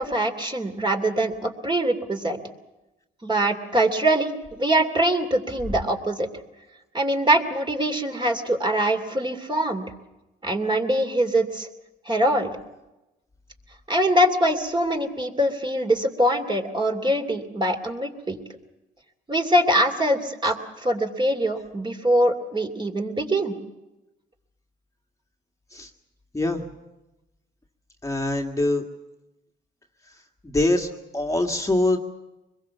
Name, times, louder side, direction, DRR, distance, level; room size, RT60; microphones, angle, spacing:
voice 1, 0.0-2.4 3.2-6.3 6.9-9.9 10.4-11.7 12.1-12.5 13.9-18.4 19.3-23.5, right 1 dB, 25° right, 4 dB, 2.8 m, -23 dB
voice 2, 28.0-28.8 30.4-30.9 31.1-32.0, left 2 dB, 15° left, 2 dB, 1.9 m, -23 dB
24.5 x 22.0 x 7.2 m, 0.99 s
cardioid pair, 90°, 20 cm